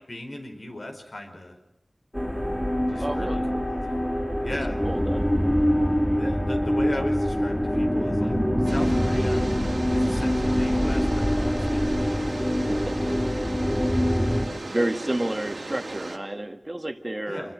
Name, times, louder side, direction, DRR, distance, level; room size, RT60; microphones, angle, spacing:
voice 1, 0.1-1.6 2.9-4.0 4.4-4.8 6.2-9.4 9.9-12.4 17.3-17.5, left 1 dB, 70° left, 4 dB, 5.0 m, -37 dB
sound 1, 2.1-14.5, equal, 15° left, 4.8 m, -24 dB
voice 2, 3.0-3.5 4.8-5.2 12.7-13.3 13.8-14.1 14.7-17.5, right 1 dB, 35° right, 7 dB, 1.7 m, -30 dB
sound 2, 8.6-16.2, right 2 dB, 85° right, 2.8 m, -37 dB
27.5 x 22.0 x 6.3 m, 0.84 s
wide cardioid pair, 45°, 0 cm